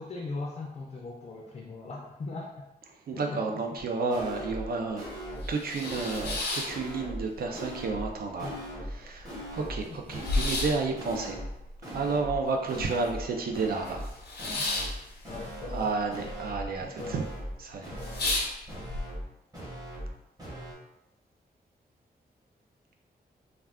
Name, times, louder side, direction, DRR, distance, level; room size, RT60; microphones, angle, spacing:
voice 1, 0.0-2.6 3.1-3.4 8.4-8.6 9.0-9.1 9.9-10.0 14.6-14.7 15.3-15.9 16.8-17.2 17.9-18.3, left 3 dB, 40° left, -2 dB, 0.4 m, -40 dB
voice 2, 2.9-11.4 11.9-14.1 15.7-17.3 17.6-17.9, right 4 dB, 65° right, 3 dB, 0.4 m, -31 dB
sound 1, 3.8-3.9 4.1-4.7 5.0-5.5 5.8-6.4 6.7-7.2 7.5-8.1 8.4-9.0 9.2-9.8 10.1-10.7 11.0-11.5 11.8-12.4 12.7-13.3 13.5-14.1 14.4-15.0 15.2-15.8 16.1-16.7 17.0-17.5 17.8-18.4 18.7-19.3 19.5-20.1 20.4-20.7, equal, 20° right, 0.9 m, -39 dB
sound 2, 4.7-4.8 5.2-7.4 7.8-8.5 8.8-8.9 9.1-13.3 13.5-16.3 16.6-17.1 17.5-17.6 17.9-19.0, left 2 dB, 85° left, 0.7 m, -33 dB
2.3 x 2.3 x 3.4 m, 0.90 s
wide cardioid pair, 145°, 17 cm